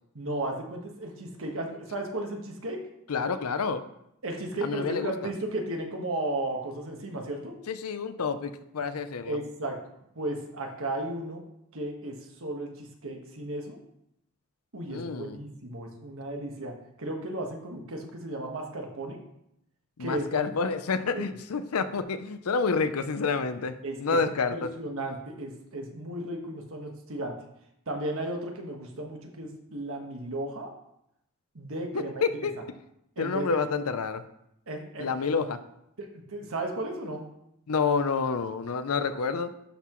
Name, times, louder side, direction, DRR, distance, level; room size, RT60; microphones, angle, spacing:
voice 1, 0.1-2.8 4.2-7.5 9.2-9.8 10.1-11.4 11.7-13.8 14.7-19.2 20.0-20.5 21.1-21.3 23.8-24.2 24.5-27.3 27.9-30.7 31.5-32.2 33.2-33.6 34.7-35.1 36.0-37.2, right 1 dB, 65° right, 2 dB, 1.4 m, -34 dB
voice 2, 3.1-3.9 4.6-5.3 7.7-9.4 14.9-15.4 20.0-24.7 31.9-32.5 33.2-34.2 35.0-35.6 37.7-39.6, left 5 dB, 75° left, 11 dB, 0.6 m, -29 dB
11.5 x 5.9 x 3.1 m, 0.79 s
head